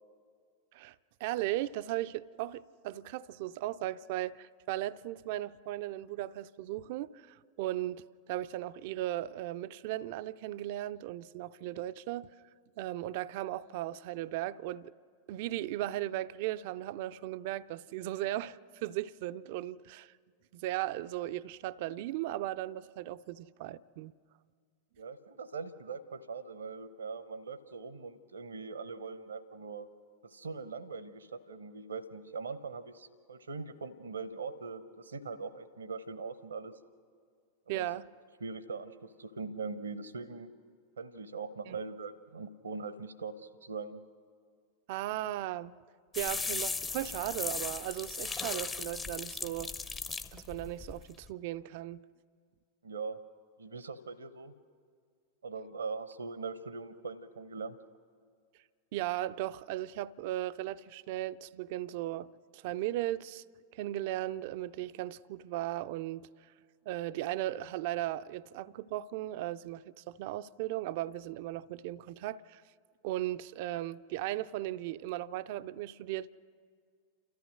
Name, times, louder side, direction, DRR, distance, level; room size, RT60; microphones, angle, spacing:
voice 1, 1.2-12.3 12.8-14.9 15.3-20.1 20.5-24.1 37.7-38.1 41.7-41.8 44.9-45.7 46.2-49.7 50.3-52.0 58.9-63.4 63.7-66.3 66.9-72.6 73.0-76.4, right 14 dB, 50° right, 0.4 m, -37 dB
voice 2, 25.0-29.9 30.2-36.8 37.7-37.9 38.4-40.5 41.0-44.0 52.8-53.2 53.6-54.5 55.4-57.8, right 4 dB, 70° right, 0.8 m, -41 dB
sound 1, 46.1-51.3, left 4 dB, 15° left, 0.7 m, -37 dB
29.5 x 14.0 x 6.3 m
figure-of-eight pair, 90°, 0 cm